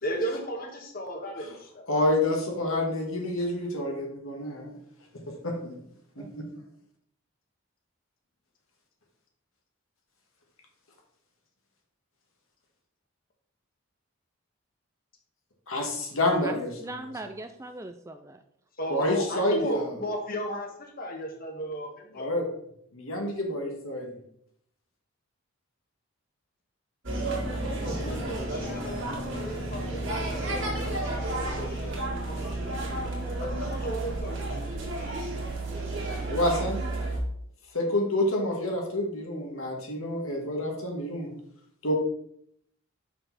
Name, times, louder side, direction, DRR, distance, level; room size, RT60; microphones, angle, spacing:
voice 1, 0.0-1.9 18.8-22.5 27.5-33.0 33.4-34.9, equal, 40° left, 2 dB, 1.4 m, -36 dB
voice 2, 1.9-4.8 5.3-5.7 6.1-6.4 15.7-17.1 18.9-19.9 22.1-22.4 22.9-24.2 36.3-36.8 37.7-41.3 41.8-41.9, left 1 dB, 70° left, 1 dB, 1.8 m, -28 dB
voice 3, 16.4-18.4, right 2 dB, 15° right, 8 dB, 0.3 m, -40 dB
sound 1, 27.0-37.2, right 2 dB, 55° right, 1.9 m, -32 dB
6.4 x 5.5 x 4.1 m, 0.70 s
head